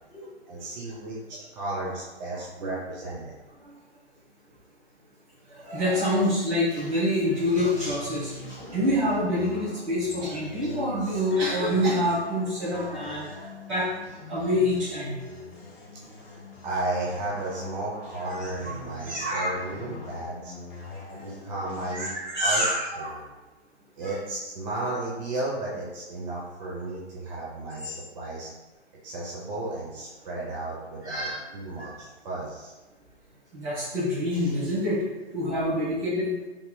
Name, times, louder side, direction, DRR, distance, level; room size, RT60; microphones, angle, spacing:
voice 1, 0.5-3.3 16.3-20.5 21.2-22.1 22.4-22.6 23.0-23.3 24.0-28.5 29.0-31.3 31.5-32.7, right 2 dB, 40° right, -5 dB, 0.6 m, -34 dB
voice 2, 2.3-2.7 5.5-13.8 14.3-15.3 18.2-18.7 19.0-19.6 21.9-23.1 24.0-24.1 31.0-31.4 31.8-31.9 33.5-35.0 35.3-36.3, left 1 dB, 75° right, -10 dB, 1.4 m, -27 dB
sound 1, 6.9-22.1, left 2 dB, 45° left, 0.9 m, -43 dB
3.5 x 2.8 x 2.2 m, 1.2 s
hypercardioid pair, 135°, 34 cm